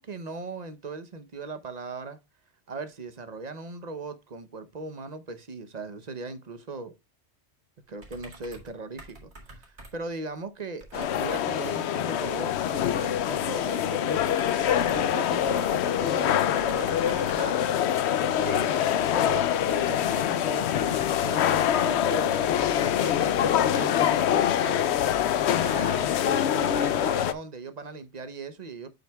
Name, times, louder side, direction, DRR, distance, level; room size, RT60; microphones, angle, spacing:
voice 1, 0.0-2.2 2.7-6.9 7.9-14.4 14.8-17.7 18.4-24.9 25.6-28.9, right 3 dB, 40° right, 0.8 m, -38 dB
sound 1, 8.0-8.7 9.0-10.2 10.8-11.1 12.6-13.5 14.1-16.1 16.6-17.5, right 2 dB, 65° right, 2.5 m, -48 dB
sound 2, 10.9-27.3, left 10 dB, 65° left, 0.8 m, -25 dB
7.8 x 7.5 x 2.3 m
omnidirectional pair, 1.3 m